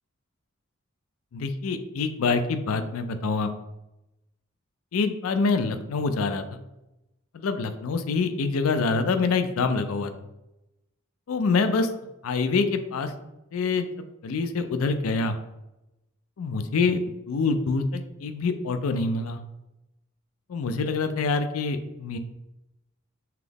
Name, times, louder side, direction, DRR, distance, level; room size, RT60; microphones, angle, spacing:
voice 1, 1.3-3.5 4.9-6.4 7.3-10.1 11.3-11.9 12.2-13.1 13.5-13.9 14.2-15.4 16.4-19.4 20.5-22.2, left 4 dB, 80° left, 9 dB, 0.4 m, -26 dB
5.7 x 2.0 x 3.4 m, 0.94 s
head